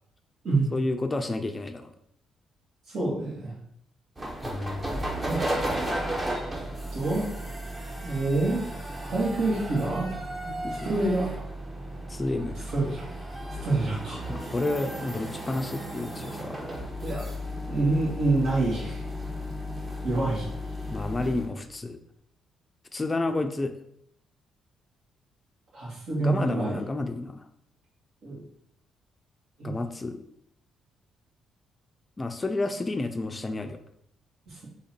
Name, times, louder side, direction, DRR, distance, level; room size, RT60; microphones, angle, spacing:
voice 1, 0.7-1.9 4.4-5.0 10.5-10.9 12.1-12.7 14.3-16.8 20.9-22.0 22.9-23.7 26.1-27.4 29.6-30.2 32.2-33.8, left 2 dB, 25° left, 7 dB, 0.4 m, -31 dB
voice 2, 2.9-3.5 5.2-5.4 6.9-7.3 8.0-8.7 9.1-10.1 10.8-11.3 12.7-13.0 13.6-14.2 17.0-17.3 17.7-19.0 20.0-20.5 25.7-26.8 28.2-28.4 29.6-29.7 34.5-34.7, right 2 dB, 70° right, -5 dB, 1.8 m, -27 dB
sound 1, 4.2-21.5, equal, 25° right, 0.9 m, -34 dB
3.9 x 2.8 x 4.3 m, 0.72 s
cardioid pair, 90°, 0 cm